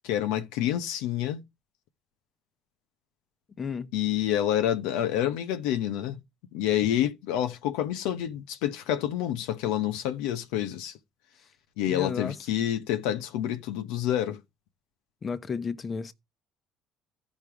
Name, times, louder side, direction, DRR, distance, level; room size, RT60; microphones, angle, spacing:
voice 1, 0.0-1.4 3.9-6.2 6.5-10.9 11.8-14.4, left 11 dB, 85° left, 1.0 m, -28 dB
voice 2, 3.6-3.9 11.9-12.3 15.2-16.1, left 5 dB, 35° left, 1.1 m, -32 dB
14.0 x 5.4 x 4.9 m
supercardioid pair, 80°, 0 cm